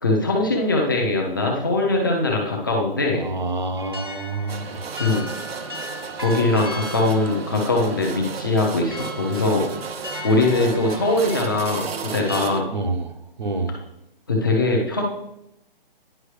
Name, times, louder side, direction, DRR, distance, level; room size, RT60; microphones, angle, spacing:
voice 1, 0.0-3.2 5.0-5.3 6.2-9.7 10.2-11.9 12.1-12.7 14.3-15.0, left 2 dB, 20° left, 0 dB, 0.7 m, -21 dB
voice 2, 3.2-4.9 12.7-13.8, right 2 dB, 50° right, 7 dB, 0.7 m, -28 dB
sound 1, 3.8-12.4, left 1 dB, 25° right, 0.3 m, -37 dB
sound 2, 4.5-12.6, right 6 dB, 85° right, 0.7 m, -34 dB
9.9 x 5.5 x 3.2 m, 0.83 s
hypercardioid pair, 175°, 29 cm